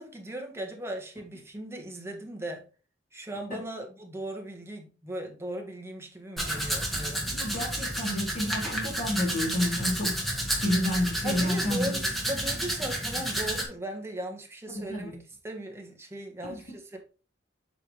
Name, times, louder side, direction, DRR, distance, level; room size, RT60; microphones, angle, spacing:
voice 1, 0.0-2.6 3.1-7.3 11.2-15.1 15.4-17.0, right 1 dB, 15° right, 1.6 m, -37 dB
Domestic sounds home sounds, 6.4-13.6, right 1 dB, ahead, 2.1 m, -31 dB
voice 2, 7.3-10.2 10.6-11.9 14.7-15.1 16.4-16.6, left 1 dB, 45° left, 3.8 m, -30 dB
7.8 x 5.7 x 3.5 m
head